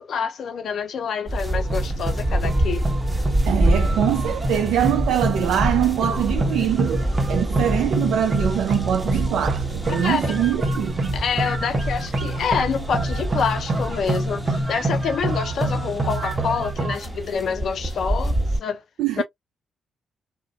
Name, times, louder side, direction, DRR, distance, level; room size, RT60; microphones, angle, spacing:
voice 1, 0.0-2.9 9.9-10.3 11.1-18.8 19.2-19.3, left 6 dB, 60° left, 0.5 m, -27 dB
sound 1, 1.3-18.6, right 1 dB, 15° right, 1.1 m, -27 dB
sound 2, 1.5-17.0, right 2 dB, 40° right, 0.8 m, -27 dB
voice 2, 3.4-11.1 19.0-19.2, right 10 dB, 75° right, 0.3 m, -23 dB
2.5 x 2.1 x 2.3 m
hypercardioid pair, 45°, 0 cm